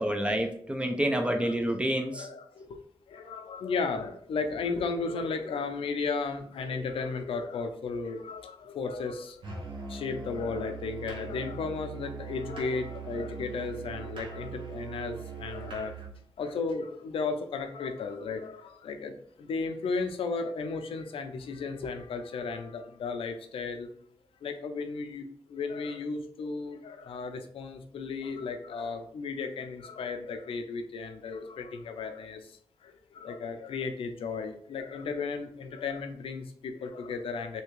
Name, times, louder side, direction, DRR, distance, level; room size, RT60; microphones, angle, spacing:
voice 1, 0.0-2.3, right 1 dB, 10° right, 5 dB, 0.5 m, -28 dB
voice 2, 1.2-1.5 2.1-2.8 3.1-9.4 9.9-15.9 16.4-23.9 24.4-37.6, left 4 dB, 80° left, 7 dB, 0.5 m, -34 dB
Musical instrument, 9.4-16.2, right 5 dB, 65° right, 1.1 m, -41 dB
3.3 x 2.8 x 3.1 m, 0.63 s
wide cardioid pair, 100°, 9 cm